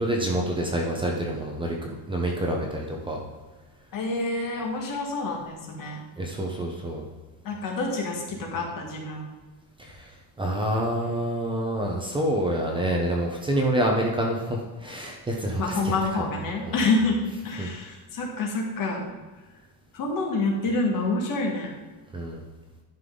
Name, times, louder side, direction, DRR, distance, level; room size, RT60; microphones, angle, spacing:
voice 1, 0.0-3.2 6.2-7.0 9.8-10.1 10.4-16.3 16.6-16.9 17.6-17.7 22.1-22.4, right 1 dB, 10° right, -1 dB, 0.8 m, -27 dB
voice 2, 3.9-6.0 7.4-9.3 15.6-19.1 19.9-21.7, left 3 dB, 50° left, 0 dB, 1.9 m, -27 dB
11.0 x 5.6 x 3.9 m, 1.3 s
cardioid pair, 175°, 41 cm